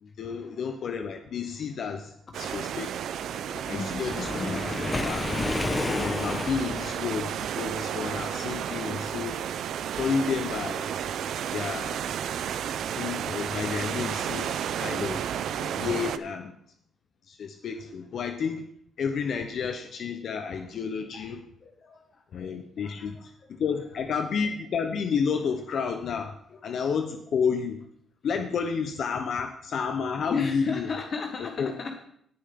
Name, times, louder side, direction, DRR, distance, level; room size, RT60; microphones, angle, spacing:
voice 1, 0.0-2.9 3.7-5.3 5.8-9.4 10.0-10.9 11.5-12.0 13.0-15.2 15.6-16.6 17.3-18.7 19.0-21.4 22.3-26.4 26.6-27.8 28.2-30.9 31.4-31.7, left 6 dB, 60° left, 6 dB, 0.8 m, -31 dB
sound 1, 2.3-16.2, right 9 dB, 70° right, 0.5 m, -32 dB
voice 2, 3.4-4.9 8.4-8.6 21.1-21.3 21.6-22.2 22.8-24.0 26.5-26.6 30.3-32.0, left 5 dB, 45° left, 5 dB, 1.1 m, -37 dB
Waves surf, 3.7-7.1, left 2 dB, 20° left, 1.1 m, -31 dB
17.5 x 6.8 x 3.7 m, 0.68 s
cardioid pair, 90°, 0 cm